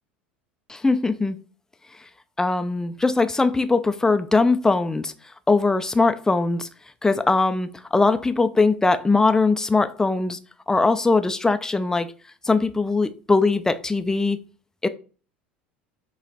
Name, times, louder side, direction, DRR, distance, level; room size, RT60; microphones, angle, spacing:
voice 1, 0.7-1.4 2.4-5.1 5.5-6.7 7.0-10.4 10.7-12.1 12.4-14.4 14.8-14.9, left 3 dB, 10° left, 0.6 m, -21 dB
8.0 x 3.2 x 4.0 m
figure-of-eight pair, 70°, 6 cm